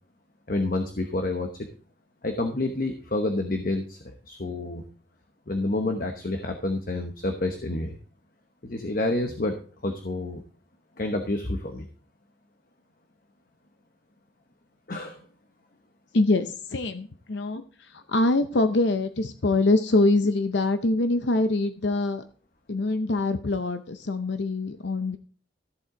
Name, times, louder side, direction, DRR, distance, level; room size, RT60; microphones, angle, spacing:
voice 1, 0.5-1.5 2.2-4.0 4.3-4.8 5.5-8.0 8.6-9.6 9.8-10.4 11.0-11.9 14.9-15.2, left 2 dB, 45° left, 5 dB, 1.0 m, -28 dB
voice 2, 16.1-22.2 22.7-25.2, left 2 dB, 65° left, 9 dB, 0.7 m, -24 dB
14.0 x 7.9 x 3.8 m, 0.41 s
head